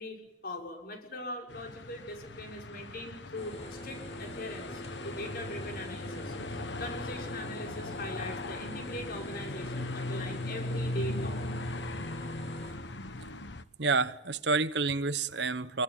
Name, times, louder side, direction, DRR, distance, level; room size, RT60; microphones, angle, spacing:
voice 1, 0.0-11.4, left 1 dB, 55° left, 6.2 m, -41 dB
sound 1, 1.5-13.6, left 2 dB, 70° left, 1.4 m, -38 dB
sound 2, 3.4-12.7, equal, 35° left, 7.2 m, -44 dB
voice 2, 13.8-15.8, right 4 dB, 70° right, 1.2 m, -29 dB
26.5 x 24.5 x 9.2 m
head